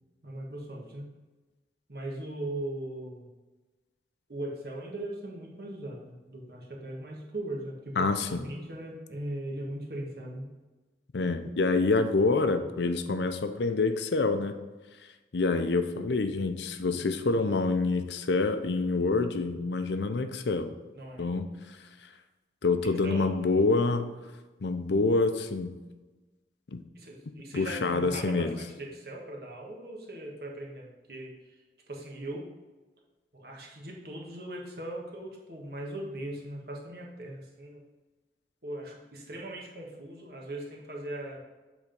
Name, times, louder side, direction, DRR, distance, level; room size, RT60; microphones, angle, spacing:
voice 1, 0.2-1.1 1.9-3.3 4.3-10.5 20.9-21.3 23.0-23.4 26.9-31.6 31.9-32.5 33.3-37.8 38.6-41.4, right 1 dB, 60° right, -1 dB, 1.5 m, -39 dB
voice 2, 8.0-8.4 11.1-14.5 15.3-20.7 21.2-21.5 22.6-24.1 24.6-25.8 26.7-26.8 27.5-28.6, left 3 dB, 80° left, 9 dB, 0.6 m, -27 dB
8.2 x 3.6 x 5.2 m, 1.2 s
head